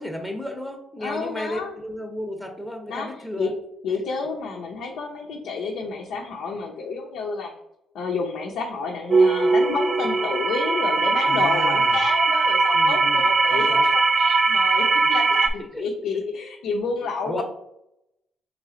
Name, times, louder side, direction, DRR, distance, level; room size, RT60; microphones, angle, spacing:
voice 1, 0.0-3.5 11.2-12.0 12.7-13.9 15.7-15.9 17.3-17.4, left 1 dB, 5° left, 3 dB, 0.7 m, -33 dB
voice 2, 1.0-1.8 2.9-3.5 3.8-7.6 7.9-17.4, left 4 dB, 80° left, -1 dB, 0.6 m, -30 dB
sound 1, 9.1-15.5, right 3 dB, 45° right, 0.4 m, -20 dB
3.3 x 3.1 x 3.8 m, 0.81 s
cardioid pair, 90°, 0 cm